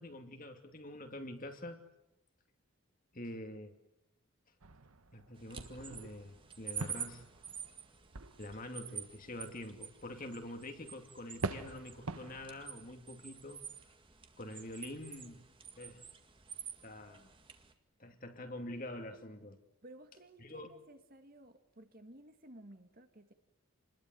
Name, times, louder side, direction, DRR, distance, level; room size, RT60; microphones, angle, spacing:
voice 1, 0.0-1.8 3.1-3.7 5.1-7.2 8.4-13.6 14.4-15.5 15.8-16.1 16.8-17.3 18.0-19.6 20.4-20.7, left 1 dB, 40° left, 5 dB, 2.6 m, -46 dB
sound 1, 4.6-9.0 10.2-10.3 11.4-12.7, right 3 dB, 80° right, 1.3 m, -44 dB
sound 2, 5.3-17.7, right 7 dB, 25° right, 2.0 m, -49 dB
voice 2, 19.8-23.3, right 1 dB, 40° right, 7 dB, 2.1 m, -56 dB
29.0 x 21.0 x 9.5 m, 0.90 s
head